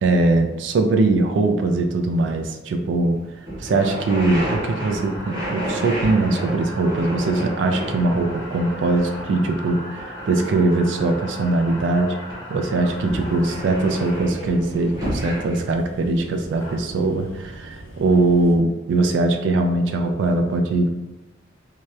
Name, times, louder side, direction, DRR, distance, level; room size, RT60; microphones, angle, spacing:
voice 1, 0.0-3.2 3.6-12.2 12.5-20.9, right 2 dB, 70° right, 5 dB, 0.3 m, -21 dB
sound 1, 3.0-3.1 3.5-12.0 12.3-15.6, equal, 20° right, 0.7 m, -31 dB
sound 2, 4.2-14.2 15.3-15.4 16.3-16.7, equal, 20° left, 0.5 m, -37 dB
sound 3, 12.8-18.6, right 1 dB, 85° left, 0.5 m, -41 dB
2.8 x 2.0 x 2.3 m, 1.0 s
head